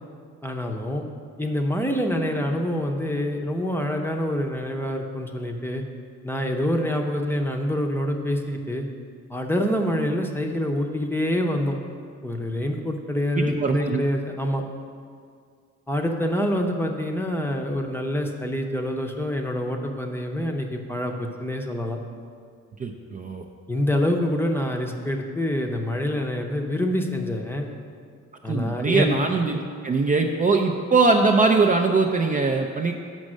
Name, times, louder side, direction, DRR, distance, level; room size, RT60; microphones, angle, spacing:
voice 1, 0.4-1.1 1.4-5.8 6.2-8.9 9.3-11.8 12.2-14.7 15.9-22.0 23.7-27.7 28.4-29.2, left 1 dB, 5° left, 2 dB, 0.7 m, -26 dB
voice 2, 13.3-14.0 22.8-23.4 28.5-32.9, right 3 dB, 25° right, 3 dB, 0.5 m, -21 dB
6.2 x 5.2 x 6.4 m, 2.1 s
cardioid pair, 90°, 30 cm